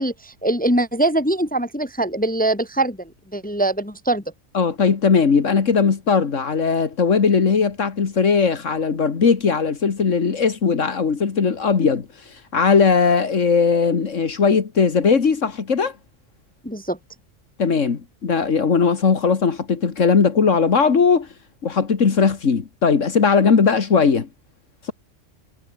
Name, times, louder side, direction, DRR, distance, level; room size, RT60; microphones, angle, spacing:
voice 1, 0.0-4.2 16.6-17.0, right 1 dB, 10° left, 0.8 m, -22 dB
voice 2, 4.5-16.0 17.6-21.3 21.6-24.3, left 5 dB, 80° left, 2.1 m, -18 dB
omnidirectional pair, 1.3 m